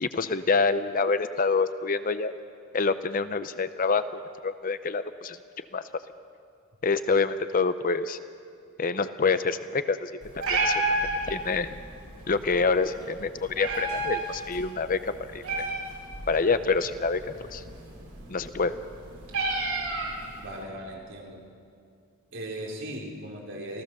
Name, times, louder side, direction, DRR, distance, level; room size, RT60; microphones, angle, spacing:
voice 1, 0.0-2.3 2.7-4.0 4.4-5.8 6.8-8.2 8.8-10.1 10.5-10.8 11.3-11.7 12.3-15.7 16.3-17.2 17.5-17.6 18.3-18.8, left 4 dB, 40° left, 12 dB, 0.6 m, -26 dB
Meow, 10.2-20.6, right 2 dB, 80° right, 5.0 m, -33 dB
voice 2, 20.4-21.4 22.3-23.8, right 1 dB, 55° right, -1 dB, 3.8 m, -38 dB
28.0 x 15.5 x 6.8 m, 2.3 s
head